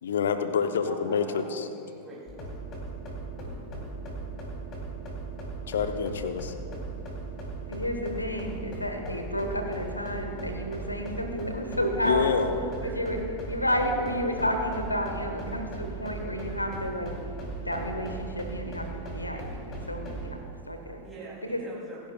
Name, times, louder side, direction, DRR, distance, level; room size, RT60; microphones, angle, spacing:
voice 1, 0.0-1.7 5.7-6.5 12.0-12.5, left 6 dB, 65° left, 9 dB, 0.8 m, -27 dB
voice 2, 0.8-2.5 12.6-13.3 21.0-22.0, right 3 dB, 5° right, -7 dB, 3.2 m, -44 dB
sound 1, 2.3-20.3, right 3 dB, 35° left, 3.4 m, -38 dB
voice 3, 7.7-12.5 12.8-13.2 13.5-17.1 17.6-18.9 19.1-19.4 19.8-21.0 21.5-21.6, equal, 85° left, 5 dB, 1.4 m, -31 dB
27.0 x 11.0 x 2.4 m, 2.5 s
figure-of-eight pair, 90°, 0 cm